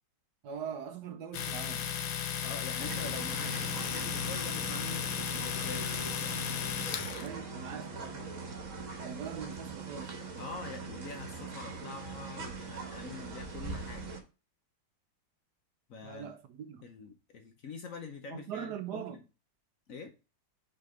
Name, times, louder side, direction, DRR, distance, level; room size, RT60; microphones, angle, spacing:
voice 1, 0.4-1.9 7.2-8.3 9.0-10.1 16.0-16.9 18.3-19.2, right 8 dB, 70° right, 1.1 m, -42 dB
Domestic sounds home sounds, 1.3-7.3, left 9 dB, 80° left, 1.5 m, -35 dB
voice 2, 2.4-5.9 10.4-14.1 15.9-16.4 16.8-19.2 19.9-20.1, left 4 dB, 55° left, 1.0 m, -45 dB
sound 1, 2.8-14.2, right 4 dB, 45° right, 1.4 m, -41 dB
5.5 x 3.9 x 5.0 m
omnidirectional pair, 2.0 m